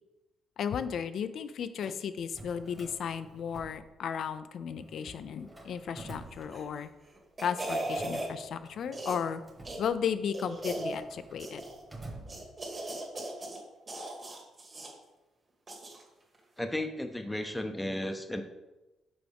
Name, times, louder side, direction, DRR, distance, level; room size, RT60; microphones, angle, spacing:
voice 1, 0.6-6.9 7.4-9.4 9.8-11.6, left 7 dB, 65° left, 12 dB, 0.4 m, -34 dB
Drawer open or close, 2.2-4.4 4.7-7.1 7.7-12.9, right 2 dB, 15° right, 1.3 m, -50 dB
sound 1, 6.4-6.8 7.2-8.3 8.9-9.3 9.6-9.8 10.3-11.0 11.4-11.8 12.3-13.6 13.9-14.9 15.7-16.0 16.3-16.4, right 2 dB, 30° right, 1.6 m, -37 dB
voice 2, 16.6-18.4, left 1 dB, 10° left, 6 dB, 0.6 m, -34 dB
6.2 x 4.5 x 3.4 m, 1.0 s
cardioid pair, 90°, 0 cm